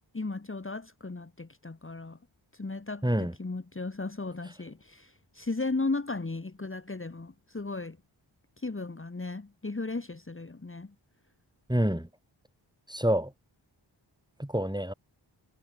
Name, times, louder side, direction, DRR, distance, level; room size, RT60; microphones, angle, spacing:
voice 1, 0.1-2.2 2.5-8.0 8.6-10.9, left 3 dB, 25° left, 1.7 m, -36 dB
voice 2, 3.0-3.4 11.7-12.1 12.9-13.3 14.4-14.9, right 1 dB, 10° right, 5.3 m, -27 dB
wide cardioid pair, 55°, 48 cm